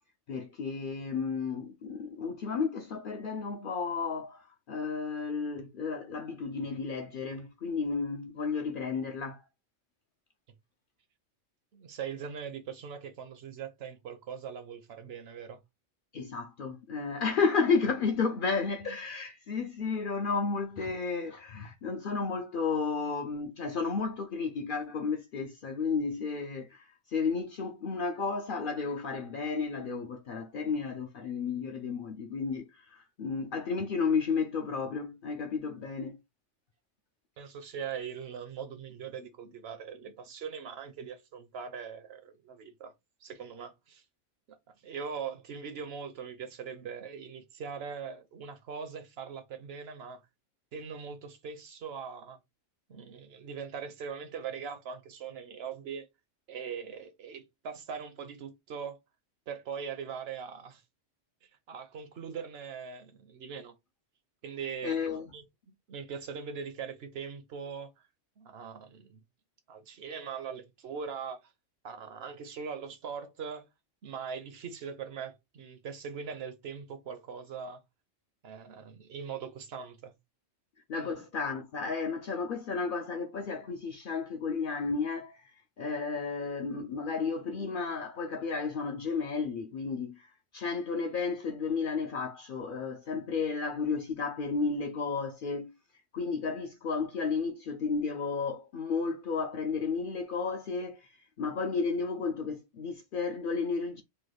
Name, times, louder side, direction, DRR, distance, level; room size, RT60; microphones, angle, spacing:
voice 1, 0.3-9.4 16.1-36.2 64.8-65.3 80.9-85.4 85.8-95.7 96.1-101.1 101.4-104.0, left 5 dB, 60° left, 0.5 m, -32 dB
voice 2, 11.7-15.6 37.4-42.9 43.2-44.0 44.8-50.2 50.7-52.4 52.9-56.1 56.5-59.0 59.5-60.8 61.4-63.7 64.4-65.0 65.3-65.4 65.9-68.1 68.4-69.2 69.7-71.5 71.8-73.7 74.0-77.8 78.4-80.1 81.0-81.2, right 6 dB, 65° right, 0.8 m, -41 dB
3.0 x 2.2 x 3.3 m
omnidirectional pair, 1.3 m